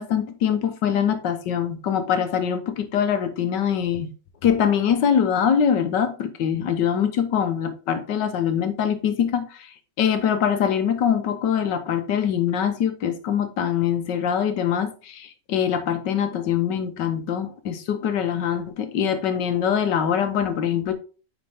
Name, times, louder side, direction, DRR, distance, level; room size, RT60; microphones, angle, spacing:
voice 1, 0.0-4.1 4.4-20.9, left 8 dB, 80° left, 1.6 m, -23 dB
9.4 x 4.5 x 3.4 m
omnidirectional pair, 1.9 m